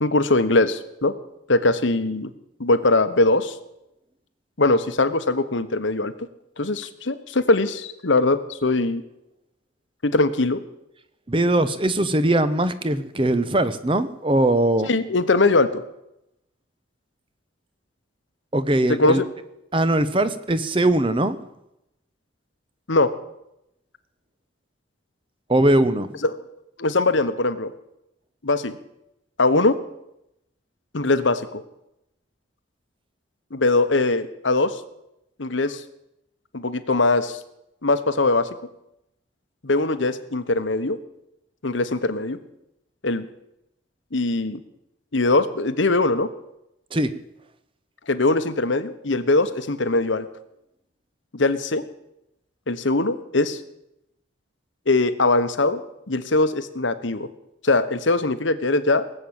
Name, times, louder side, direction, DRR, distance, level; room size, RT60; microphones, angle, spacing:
voice 1, 0.0-1.1 1.5-2.3 2.6-3.5 4.6-6.1 6.6-9.0 10.0-10.6 14.9-15.8 19.0-19.2 22.9-23.1 26.8-27.7 28.4-28.8 29.4-29.8 30.9-31.6 33.5-34.8 35.4-35.8 36.5-37.4 37.8-38.5 39.6-41.0 41.6-42.4 43.0-43.2 44.1-44.6 45.1-46.3 48.1-50.3 51.3-51.8 52.7-53.6 54.9-57.3 57.6-59.1, left 2 dB, 75° left, 11 dB, 1.2 m, -21 dB
voice 2, 11.3-14.9 18.5-19.2 19.7-21.4 25.5-26.2 46.9-47.1, right 1 dB, 25° right, 12 dB, 0.9 m, -20 dB
19.0 x 7.8 x 8.9 m, 0.84 s
head